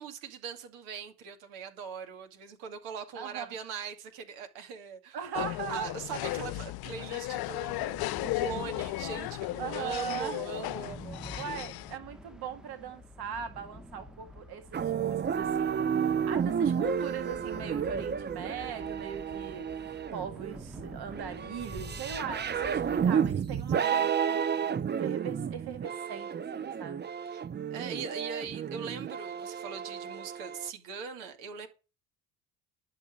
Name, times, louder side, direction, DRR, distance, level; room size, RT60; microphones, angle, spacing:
voice 1, 0.0-11.6 23.8-24.1 27.3-27.4 27.7-31.7, right 6 dB, 80° right, 2.5 m, -41 dB
voice 2, 3.1-3.5 5.1-5.9 9.6-10.4 11.3-16.0 16.3-24.5 25.0-27.0, right 7 dB, 60° right, 1.8 m, -40 dB
sound 1, 5.3-12.0, left 18 dB, 60° left, 0.6 m, -35 dB
sound 2, 7.6-23.2, equal, ahead, 1.0 m, -48 dB
sound 3, 14.7-30.7, right 7 dB, 25° right, 0.5 m, -32 dB
11.5 x 5.9 x 8.6 m
supercardioid pair, 70°, 44 cm